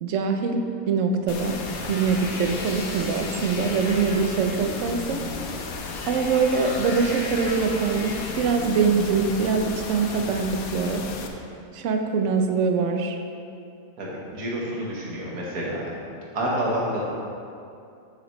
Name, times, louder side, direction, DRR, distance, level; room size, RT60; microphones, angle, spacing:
voice 1, 0.0-1.6 1.9-5.2 6.1-11.0 11.7-13.2, right 5 dB, 65° right, 4 dB, 1.0 m, -23 dB
sound 1, 1.3-11.3, left 4 dB, 90° left, 1.2 m, -35 dB
sound 2, 1.4-9.1, left 3 dB, 50° left, 1.1 m, -37 dB
voice 2, 14.0-16.0 16.3-17.0, right 1 dB, 85° right, -5 dB, 1.9 m, -28 dB
9.6 x 8.4 x 3.1 m, 2.6 s
omnidirectional pair, 1.5 m